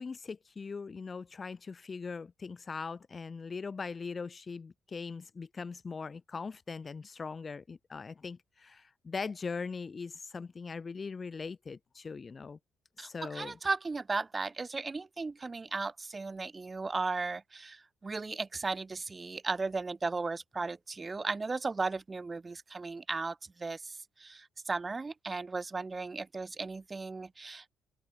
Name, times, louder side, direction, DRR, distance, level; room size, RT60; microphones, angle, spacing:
voice 1, 0.0-12.6 13.0-13.6, left 4 dB, 40° left, 1.1 m, -40 dB
voice 2, 13.0-27.7, right 3 dB, 30° right, 2.3 m, -36 dB
hypercardioid pair, 45°, 0 cm